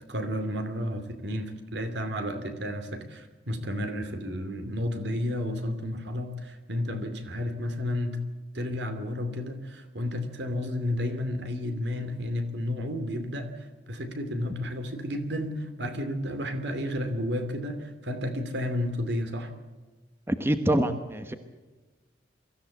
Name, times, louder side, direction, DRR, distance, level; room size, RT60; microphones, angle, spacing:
voice 1, 0.0-8.2 8.5-19.5, left 1 dB, 65° right, 8 dB, 2.7 m, -32 dB
voice 2, 20.3-21.3, right 1 dB, 15° right, 9 dB, 1.0 m, -25 dB
24.0 x 14.5 x 8.4 m, 1.3 s
head